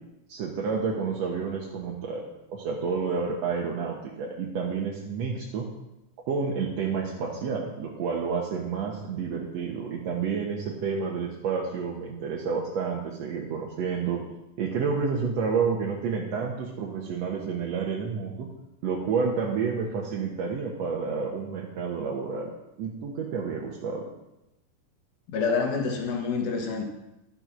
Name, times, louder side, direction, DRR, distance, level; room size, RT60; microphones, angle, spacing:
voice 1, 0.3-5.7 6.3-14.2 14.6-18.5 18.8-22.5 22.8-24.1, right 5 dB, 60° right, -2 dB, 1.9 m, -30 dB
voice 2, 25.3-26.8, left 5 dB, 60° left, 3 dB, 3.0 m, -27 dB
12.5 x 7.8 x 6.0 m, 0.91 s
omnidirectional pair, 4.2 m